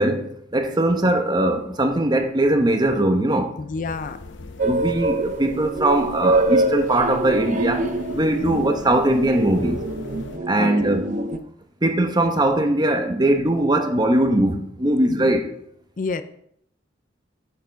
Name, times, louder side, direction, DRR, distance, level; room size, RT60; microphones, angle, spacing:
voice 1, 0.0-3.5 4.6-9.8 10.5-11.1 11.8-15.5, right 1 dB, 25° right, 1.0 m, -20 dB
voice 2, 3.6-4.2 8.4-8.6 10.6-10.7 15.1-15.3 16.0-16.2, left 4 dB, 45° left, 0.5 m, -29 dB
sound 1, 3.8-10.4, left 3 dB, 80° left, 0.8 m, -39 dB
sound 2, 4.6-11.4, right 2 dB, 45° right, 0.7 m, -25 dB
8.8 x 7.6 x 4.5 m
head